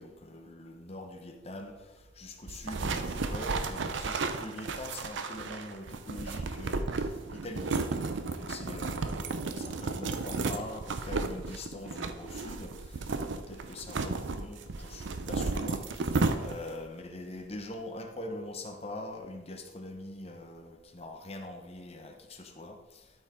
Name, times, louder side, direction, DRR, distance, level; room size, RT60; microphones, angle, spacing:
voice 1, 0.0-1.8 2.2-23.0, left 1 dB, 30° left, 4 dB, 0.9 m, -43 dB
sound 1, 2.5-16.8, right 3 dB, 70° right, 0.5 m, -33 dB
12.5 x 4.9 x 3.7 m, 1.1 s
head